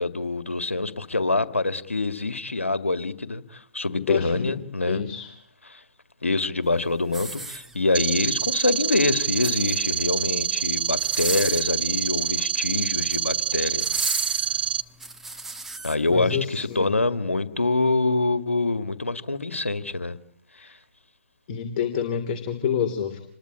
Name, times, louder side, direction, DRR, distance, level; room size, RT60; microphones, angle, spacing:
voice 1, 0.0-5.0 5.7-5.8 6.2-14.0 15.8-20.2 20.6-20.8, left 3 dB, 80° left, 12 dB, 2.0 m, -25 dB
voice 2, 4.1-4.6 4.9-5.3 16.1-16.9 20.6-20.7 21.5-23.2, left 8 dB, 35° left, 7 dB, 2.9 m, -28 dB
sound 1, 7.1-8.1 9.2-10.0 10.9-11.7 12.8-13.3 13.8-16.0 16.5-16.7, right 3 dB, 5° right, 1.6 m, -34 dB
sound 2, 7.9-14.8, right 8 dB, 50° right, 1.1 m, -26 dB
28.0 x 21.5 x 8.8 m, 0.63 s
figure-of-eight pair, 130°, 7 cm